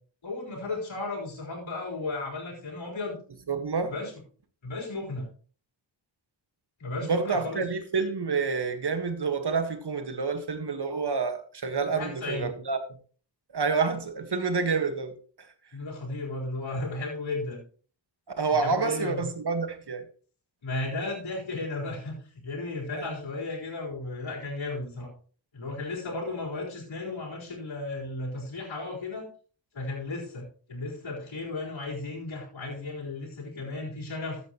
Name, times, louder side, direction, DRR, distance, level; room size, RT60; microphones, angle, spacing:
voice 1, 0.2-3.2 3.9-4.1 4.6-5.3 6.8-7.6 11.9-12.5 15.7-17.6 18.5-19.2 20.6-25.1 25.5-29.3 29.7-34.4, left 2 dB, 85° left, 4.5 m, -34 dB
voice 2, 3.5-3.9 7.0-12.8 13.5-15.5 18.4-20.0 23.0-23.1, right 4 dB, 60° right, 1.7 m, -28 dB
14.0 x 9.3 x 3.1 m
wide cardioid pair, 95°, 45 cm